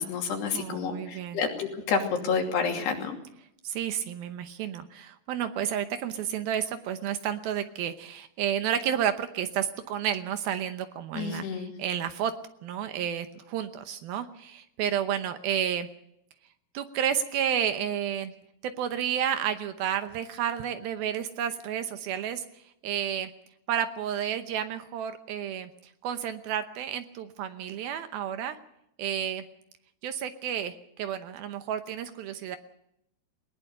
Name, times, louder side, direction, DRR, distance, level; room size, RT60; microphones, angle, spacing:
voice 1, 0.0-3.2 11.1-11.7, left 5 dB, 75° left, 2 dB, 4.8 m, -29 dB
voice 2, 0.5-1.4 3.6-11.4 11.8-12.3 12.6-15.9 16.7-18.3 18.6-22.5 22.8-23.3 23.7-25.7 26.0-28.6 29.0-29.4 30.0-32.6, right 9 dB, 75° right, 9 dB, 2.6 m, -31 dB
20.0 x 19.5 x 6.7 m, 0.76 s
omnidirectional pair, 4.8 m